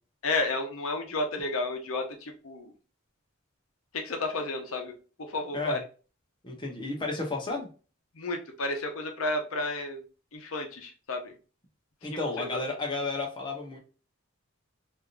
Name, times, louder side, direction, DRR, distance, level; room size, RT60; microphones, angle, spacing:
voice 1, 0.2-2.7 3.9-4.9 5.3-5.8 8.2-10.0 10.3-11.3 12.1-12.6, left 2 dB, 85° left, 4 dB, 0.7 m, -32 dB
voice 2, 6.4-7.7 12.0-13.8, left 3 dB, 20° left, 0 dB, 0.7 m, -32 dB
3.4 x 2.6 x 2.4 m, 0.35 s
head